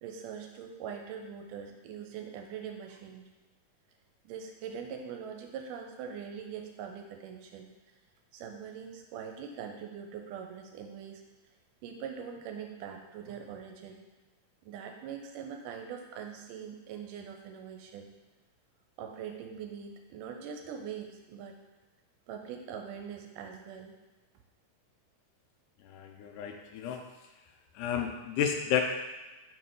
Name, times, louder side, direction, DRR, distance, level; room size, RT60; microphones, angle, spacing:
voice 1, 0.0-3.3 4.2-7.7 8.3-11.2 11.8-14.0 14.6-18.1 19.0-21.6 22.3-23.9, right 7 dB, 85° right, 4 dB, 2.2 m, -42 dB
voice 2, 25.8-27.1 27.8-28.8, left 9 dB, 80° left, 3 dB, 2.1 m, -32 dB
5.8 x 4.7 x 3.8 m, 1.2 s
omnidirectional pair, 3.8 m